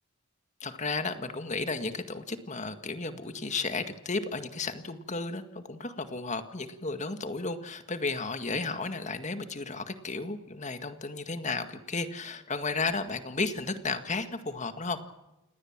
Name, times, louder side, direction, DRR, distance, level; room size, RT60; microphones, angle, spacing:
voice 1, 0.6-15.0, left 3 dB, 35° left, 8 dB, 1.9 m, -33 dB
29.5 x 19.5 x 7.4 m, 0.95 s
head